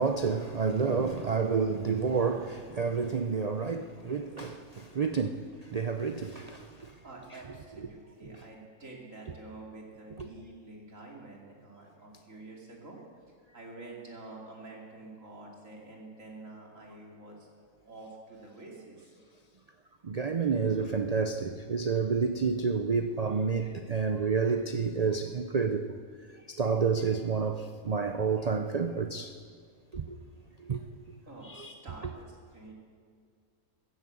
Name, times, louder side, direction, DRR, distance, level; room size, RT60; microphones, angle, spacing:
voice 1, 0.0-6.9 8.2-8.3 10.2-10.3 20.0-26.0 26.5-29.4 29.9-30.2 30.6-30.8 31.4-31.7, right 5 dB, 90° right, 0.3 m, -29 dB
voice 2, 7.0-13.0 13.5-17.5 17.8-19.1 31.3-32.7, right 2 dB, 55° right, 3.1 m, -48 dB
14.5 x 11.0 x 8.3 m
omnidirectional pair, 1.6 m